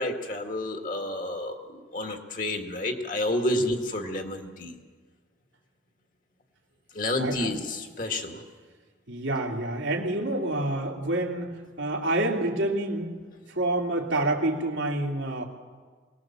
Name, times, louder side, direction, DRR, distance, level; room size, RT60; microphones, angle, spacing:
voice 1, 0.0-4.8 6.9-8.4, left 1 dB, 45° left, 4 dB, 2.0 m, -30 dB
voice 2, 7.2-7.5 9.1-11.5 11.8-13.1 13.5-15.5, right 1 dB, 80° right, 0 dB, 2.8 m, -27 dB
23.0 x 19.5 x 7.4 m, 1.5 s
head